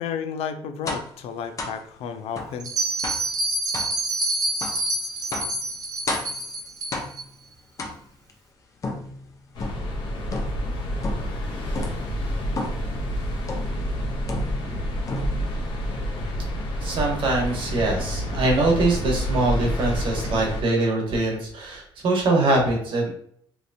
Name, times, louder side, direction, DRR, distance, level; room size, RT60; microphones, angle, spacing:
voice 1, 0.0-2.7, left 7 dB, 90° left, 7 dB, 0.5 m, -32 dB
sound 1, 0.9-1.2 1.6-1.8 2.4-2.6 3.0-3.3 3.7-4.0 4.6-4.8 5.3-5.6 6.1-6.4 6.9-7.3 7.8-8.3 8.8-9.9 10.3-10.7 11.0-11.4 11.7-12.1 12.6-12.9 13.5-13.8 14.3-14.8 15.1-15.6, left 2 dB, 35° left, 0.6 m, -32 dB
Bell, 2.6-7.2, right 2 dB, 40° right, 0.6 m, -27 dB
sound 2, 9.5-20.6, equal, 55° left, 0.9 m, -28 dB
voice 2, 16.8-23.1, right 2 dB, 60° right, 0 dB, 1.1 m, -23 dB
3.2 x 2.9 x 2.7 m, 0.64 s
cardioid pair, 145°, 10 cm